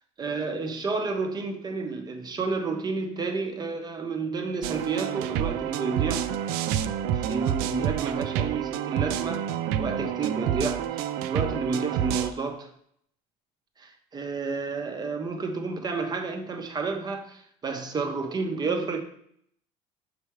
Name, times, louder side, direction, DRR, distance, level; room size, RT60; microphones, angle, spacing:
voice 1, 0.2-6.3 7.1-9.5 9.8-12.7 13.8-19.0, right 4 dB, 25° right, 5 dB, 0.9 m, -31 dB
sound 1, 4.6-12.3, right 9 dB, 75° right, 0.5 m, -28 dB
6.8 x 3.3 x 4.7 m, 0.67 s
cardioid pair, 125°, 16 cm